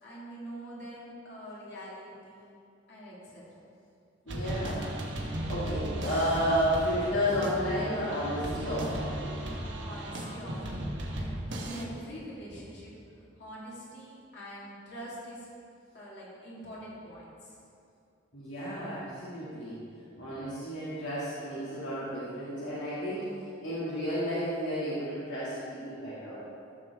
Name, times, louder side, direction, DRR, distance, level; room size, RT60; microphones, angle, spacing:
voice 1, 0.0-2.6 2.9-3.5 9.8-10.9 11.2-15.5 15.9-17.6, equal, 65° left, -7 dB, 2.2 m, -44 dB
voice 2, 4.3-4.8 5.2-9.2 18.3-19.8 20.2-23.3 23.6-26.4, equal, 85° left, -11 dB, 2.1 m, -32 dB
sound 1, 4.3-11.8, right 1 dB, 75° right, 1.3 m, -36 dB
14.5 x 6.7 x 3.5 m, 2.5 s
head